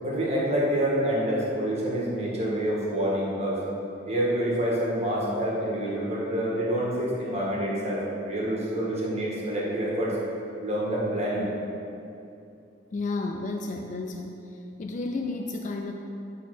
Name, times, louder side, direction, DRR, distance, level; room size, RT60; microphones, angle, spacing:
voice 1, 0.0-3.6 4.1-10.2 10.6-11.5, right 1 dB, 35° right, -6 dB, 1.8 m, -27 dB
voice 2, 12.9-14.4 14.8-15.9, left 3 dB, 40° left, 4 dB, 0.4 m, -31 dB
9.0 x 4.0 x 6.1 m, 2.7 s
head